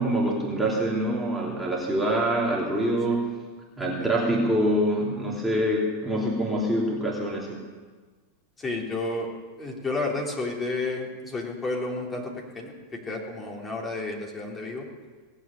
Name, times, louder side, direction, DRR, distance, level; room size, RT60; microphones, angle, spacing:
voice 1, 0.0-3.4 3.8-7.7, right 1 dB, 5° right, -4 dB, 2.8 m, -25 dB
voice 2, 3.8-4.2 8.6-9.3 9.6-14.9, left 2 dB, 20° left, -1 dB, 3.5 m, -31 dB
18.0 x 8.1 x 8.9 m, 1.5 s
hypercardioid pair, 105°, 0 cm